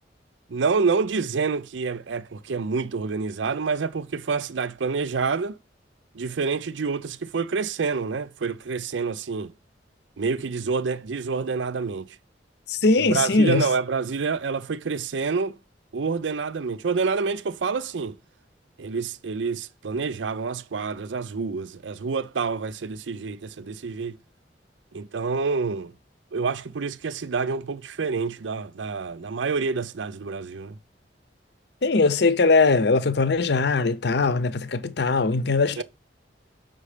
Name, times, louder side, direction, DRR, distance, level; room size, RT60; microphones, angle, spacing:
voice 1, 0.5-5.6 6.1-9.5 10.2-12.1 13.1-15.6 15.9-18.2 18.8-24.2 24.9-25.9 26.3-30.8 35.8-35.9, right 4 dB, 85° right, 0.5 m, -27 dB
voice 2, 12.7-13.6 31.8-35.8, left 3 dB, 65° left, 0.7 m, -21 dB
7.3 x 5.5 x 5.0 m
head